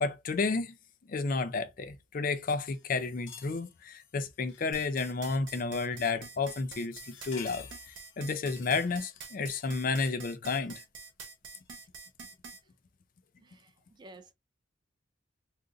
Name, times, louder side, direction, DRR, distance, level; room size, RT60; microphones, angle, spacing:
voice 1, 0.0-0.7 1.1-10.8, left 4 dB, 45° left, 0.4 m, -32 dB
sound 1, 2.7-5.4 5.9-6.2 6.4-9.9 10.6-10.7 11.6-11.8, left 7 dB, 70° left, 0.7 m, -53 dB
sound 2, 4.7-12.6, right 4 dB, 70° right, 0.9 m, -46 dB
voice 2, 13.4-14.3, right 2 dB, 20° right, 0.3 m, -53 dB
2.5 x 2.5 x 3.7 m
head